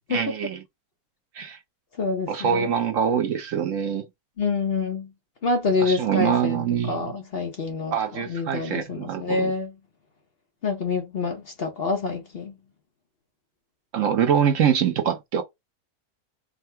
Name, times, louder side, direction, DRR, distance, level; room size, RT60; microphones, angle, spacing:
voice 1, 0.1-0.6 1.4-1.6 2.3-4.0 5.8-7.2 7.9-9.5 13.9-15.4, right 8 dB, 65° right, 1.0 m, -24 dB
voice 2, 2.0-2.7 4.4-5.1 5.4-7.9 8.2-9.7 10.6-12.5, left 4 dB, 45° left, 0.9 m, -27 dB
3.7 x 2.3 x 4.3 m
omnidirectional pair, 1.6 m